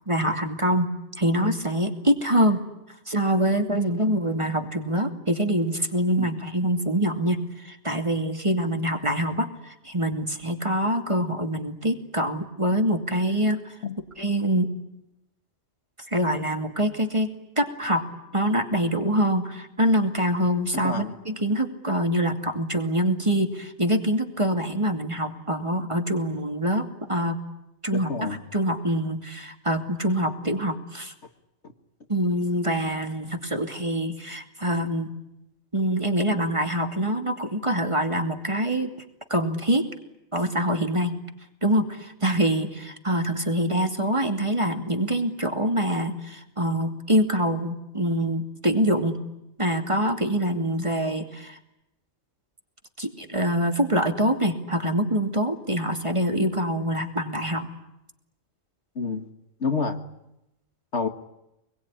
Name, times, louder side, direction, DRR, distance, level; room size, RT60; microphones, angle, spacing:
voice 1, 0.1-0.9 1.2-2.6 3.1-13.7 14.2-14.7 16.1-18.0 18.3-27.4 27.8-31.1 32.1-35.1 35.7-38.9 39.3-39.9 40.3-41.1 41.6-49.2 49.6-51.6 53.0-57.7, right 1 dB, 20° right, 5 dB, 2.6 m, -25 dB
voice 2, 59.0-59.3 59.6-60.0 60.9-61.1, left 4 dB, 60° left, 7 dB, 2.1 m, -27 dB
27.0 x 22.0 x 9.9 m, 0.86 s
omnidirectional pair, 1.4 m